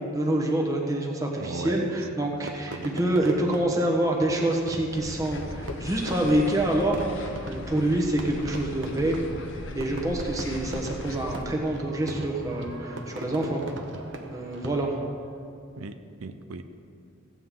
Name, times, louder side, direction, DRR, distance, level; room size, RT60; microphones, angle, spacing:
voice 1, 0.1-9.1 9.7-13.6 14.3-14.9, right 1 dB, 15° right, -1 dB, 1.2 m, -26 dB
voice 2, 1.4-2.8 9.4-9.5 15.8-16.7, right 4 dB, 85° right, 8 dB, 0.5 m, -38 dB
Fireworks, 2.4-15.1, right 1 dB, 60° right, 1.0 m, -40 dB
sound 1, 4.9-11.4, left 2 dB, 60° left, 0.8 m, -38 dB
15.5 x 8.8 x 3.7 m, 2.4 s
head